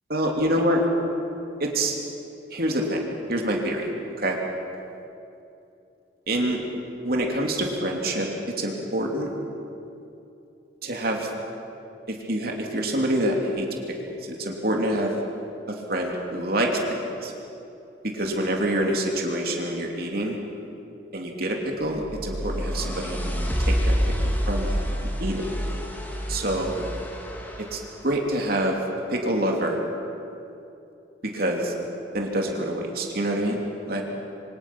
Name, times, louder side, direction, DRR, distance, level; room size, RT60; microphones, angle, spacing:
voice 1, 0.1-0.8 1.6-1.9 2.5-3.9 4.2-4.4 6.3-6.6 7.0-8.3 8.6-9.3 10.8-11.3 12.1-15.1 15.7-17.3 18.0-20.4 21.1-23.3 23.6-25.4 26.3-26.9 27.6-28.8 29.1-29.8 31.2-31.7 32.1-33.6 33.9-34.0, right 1 dB, 50° right, 1 dB, 3.0 m, -26 dB
sound 1, 21.9-27.9, equal, 10° left, 2.6 m, -27 dB
26.5 x 25.5 x 6.1 m, 2.8 s
head